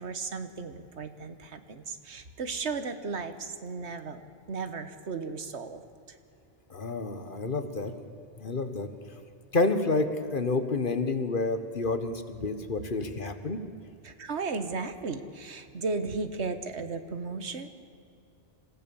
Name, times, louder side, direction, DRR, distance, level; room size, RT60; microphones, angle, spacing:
voice 1, 0.0-5.8 6.1-6.2 14.0-17.7, right 4 dB, 85° right, 9 dB, 1.5 m, -35 dB
voice 2, 6.7-7.9 8.4-8.9 9.5-13.6, left 3 dB, 50° left, 9 dB, 1.5 m, -29 dB
26.5 x 15.5 x 7.1 m, 2.6 s
omnidirectional pair, 1.1 m